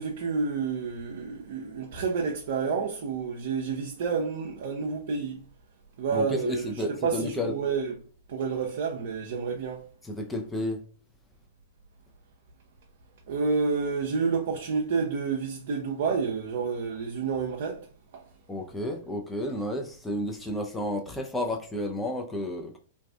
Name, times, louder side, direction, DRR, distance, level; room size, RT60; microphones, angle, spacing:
voice 1, 0.0-5.4 6.0-6.7 7.0-7.9 8.3-9.8 13.3-17.8 18.1-18.2, right 5 dB, 60° right, 0.4 m, -29 dB
voice 2, 6.1-7.5 10.0-10.8 18.5-22.8, left 1 dB, 10° left, 0.4 m, -31 dB
2.5 x 2.3 x 2.3 m
figure-of-eight pair, 105°, 0 cm